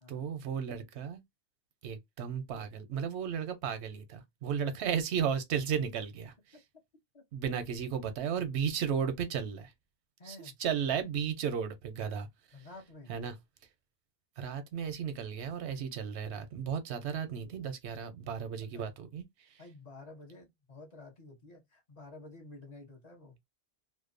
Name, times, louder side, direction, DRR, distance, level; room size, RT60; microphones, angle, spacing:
voice 1, 0.1-1.2 1.8-6.6 7.3-9.7 10.2-12.3 13.1-13.3 14.4-19.6, right 7 dB, 90° right, 0.9 m, -34 dB
voice 2, 10.2-10.5 12.5-13.1 17.1-17.7 18.7-18.9 19.6-23.4, left 2 dB, 40° left, 0.9 m, -51 dB
2.7 x 2.0 x 2.5 m
omnidirectional pair, 1.1 m